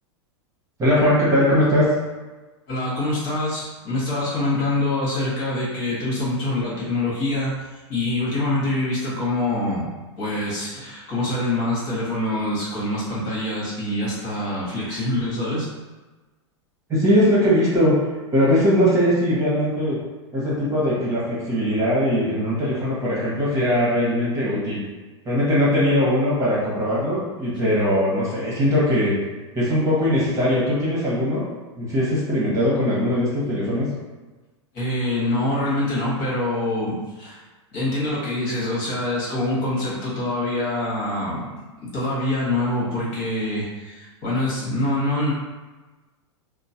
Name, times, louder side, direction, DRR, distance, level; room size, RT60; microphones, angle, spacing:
voice 1, 0.8-1.8 16.9-17.9 18.3-20.0 20.3-24.8 25.2-29.2 29.5-31.4 31.8-33.9, equal, 20° right, -7 dB, 1.1 m, -20 dB
voice 2, 2.7-7.5 7.9-9.9 10.2-15.7 34.7-37.4 37.7-41.5 41.8-45.3, left 1 dB, 50° left, -7 dB, 1.4 m, -25 dB
2.9 x 2.1 x 2.8 m, 1.2 s
hypercardioid pair, 115°, 15 cm